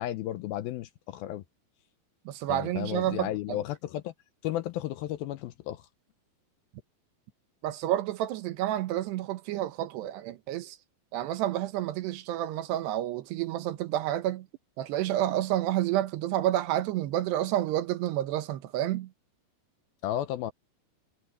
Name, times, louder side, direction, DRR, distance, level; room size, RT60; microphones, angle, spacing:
voice 1, 0.0-1.4 2.5-4.1 4.4-5.8 20.0-20.5, left 13 dB, 75° left, 2.3 m, -33 dB
voice 2, 2.3-3.6 7.6-10.8 11.1-14.5 14.8-19.1, right 13 dB, 80° right, 3.2 m, -29 dB
omnidirectional pair, 4.8 m